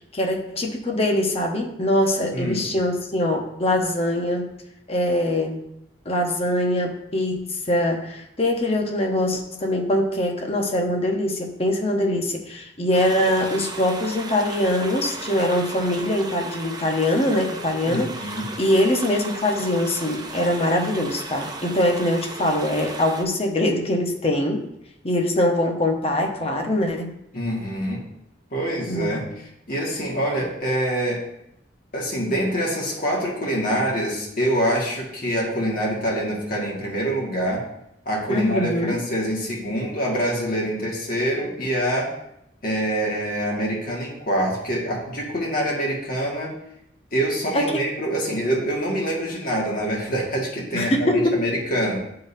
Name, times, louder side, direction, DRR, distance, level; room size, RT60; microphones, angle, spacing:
voice 1, 0.1-4.5 4.9-5.6 6.0-24.6 25.0-27.1 28.9-29.2 38.3-39.0 47.5-47.8 50.7-51.4, left 1 dB, 35° left, 2 dB, 0.9 m, -23 dB
voice 2, 2.3-2.7 17.9-18.5 27.3-28.0 28.5-29.2 29.7-31.2 31.9-37.6 38.1-42.1 42.6-46.5 47.1-52.0, equal, 50° left, -3 dB, 1.8 m, -25 dB
sound 1, 12.9-23.2, right 3 dB, 20° right, 0.6 m, -36 dB
10.5 x 3.8 x 2.7 m, 0.80 s
head